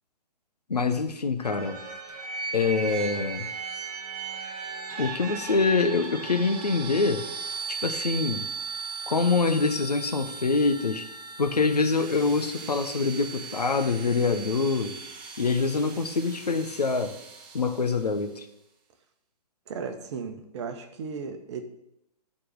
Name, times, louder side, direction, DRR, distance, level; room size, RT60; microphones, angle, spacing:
voice 1, 0.7-1.8 2.5-3.5 5.0-7.3 7.7-8.5 9.1-11.0 11.4-15.0 15.4-17.2 17.5-18.4, left 4 dB, 75° left, 7 dB, 1.1 m, -25 dB
sound 1, 1.4-18.1, right 5 dB, 30° right, 1.4 m, -37 dB
voice 2, 19.7-21.6, right 5 dB, 45° right, 6 dB, 1.2 m, -35 dB
12.0 x 4.3 x 6.6 m, 0.81 s
figure-of-eight pair, 125°, 21 cm